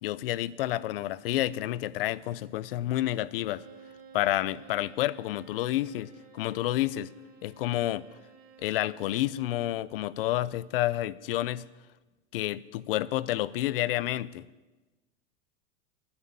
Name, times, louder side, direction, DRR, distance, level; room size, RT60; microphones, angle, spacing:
voice 1, 0.0-3.6 4.1-7.1 7.4-8.1 8.6-11.7 12.3-14.4, left 14 dB, 55° left, 20 dB, 0.6 m, -29 dB
Bowed string instrument, 3.4-9.3, right 6 dB, 25° right, 1.4 m, -54 dB
11.0 x 9.7 x 8.7 m, 1.2 s
supercardioid pair, 170°, 33 cm